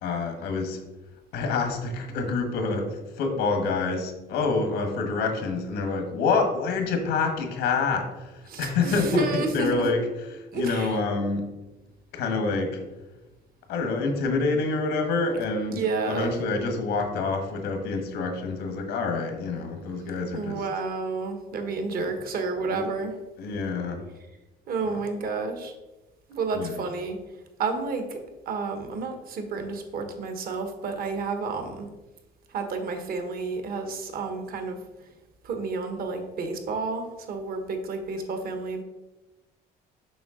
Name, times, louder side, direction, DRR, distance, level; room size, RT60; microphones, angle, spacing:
voice 1, 0.0-0.8 1.3-10.0 10.3-11.5 12.1-12.8 13.7-20.6 21.9-22.1 22.7-22.8 23.4-24.0 26.5-26.8, left 4 dB, 85° left, 5 dB, 1.4 m, -27 dB
voice 2, 8.5-9.8 10.5-11.0 15.7-16.4 20.3-23.1 24.7-25.7 26.3-27.2 27.6-31.9 32.5-35.1 35.4-38.8, right 4 dB, 60° right, 6 dB, 1.3 m, -30 dB
7.0 x 5.6 x 3.8 m, 1.1 s
cardioid pair, 110°, 17 cm